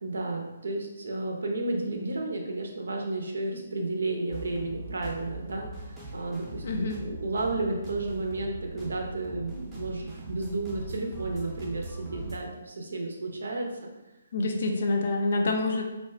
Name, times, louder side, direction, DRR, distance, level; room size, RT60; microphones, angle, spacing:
voice 1, 0.0-13.9, right 2 dB, 70° right, 2 dB, 0.5 m, -32 dB
sound 1, 4.3-12.4, right 2 dB, 10° right, 0.7 m, -40 dB
voice 2, 6.6-7.0 14.3-15.8, left 2 dB, 55° left, 2 dB, 0.5 m, -27 dB
2.6 x 2.2 x 3.2 m, 1.0 s
figure-of-eight pair, 140°, 0 cm